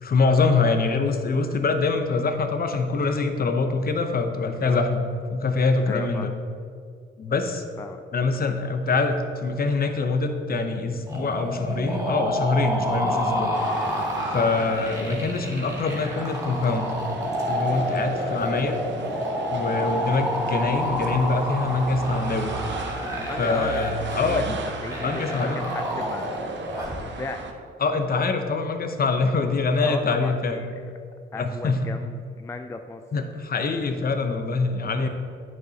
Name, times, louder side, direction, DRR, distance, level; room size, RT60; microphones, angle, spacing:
voice 1, 0.0-5.0 5.3-6.3 7.2-7.6 8.1-13.5 14.3-16.9 17.5-18.7 19.5-22.5 23.4-24.6 25.0-25.8 27.8-30.6 31.4-31.8 33.1-35.1, left 4 dB, 45° left, 6 dB, 0.8 m, -24 dB
voice 2, 4.4-4.8 5.9-6.4 7.8-8.0 19.7-20.0 23.1-23.9 24.2-26.4 26.7-27.4 29.8-30.8 31.3-33.0, left 3 dB, 15° left, 6 dB, 0.3 m, -37 dB
sound 1, 11.1-27.0, equal, 15° right, 1.7 m, -29 dB
sound 2, 13.5-27.5, right 5 dB, 60° right, 0.8 m, -38 dB
8.9 x 6.3 x 2.8 m, 2.3 s
cardioid pair, 75°, 21 cm